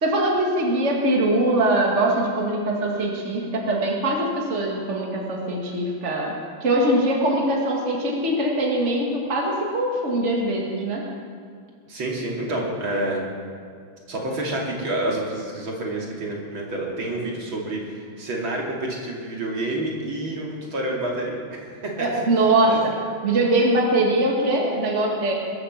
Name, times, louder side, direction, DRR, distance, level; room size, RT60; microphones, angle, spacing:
voice 1, 0.0-6.4 6.6-11.1 22.0-22.9 23.2-25.3, right 1 dB, 35° right, -1 dB, 2.3 m, -22 dB
voice 2, 11.9-13.2 14.1-22.1 22.7-22.8, right 1 dB, 70° right, -2 dB, 3.4 m, -28 dB
21.0 x 8.7 x 7.4 m, 2.2 s
omnidirectional pair, 2.2 m